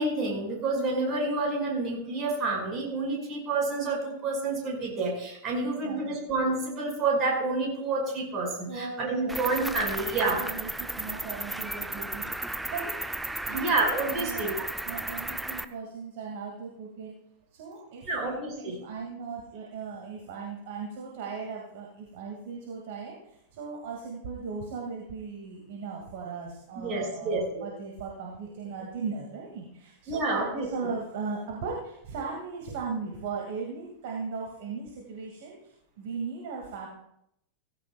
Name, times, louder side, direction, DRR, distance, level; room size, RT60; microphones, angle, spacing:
voice 1, 0.0-10.4 13.5-14.6 18.0-18.8 26.8-27.7 30.1-30.5, right 3 dB, 30° right, -1 dB, 5.7 m, -29 dB
voice 2, 5.6-6.2 8.7-12.4 12.7-13.7 14.1-14.5 14.8-17.2 17.5-18.3 18.6-36.9, right 5 dB, 50° right, -1 dB, 2.2 m, -38 dB
Cricket, 9.3-15.6, right 1 dB, 5° right, 0.6 m, -34 dB
17.0 x 15.0 x 2.4 m, 0.79 s
figure-of-eight pair, 90°, 0 cm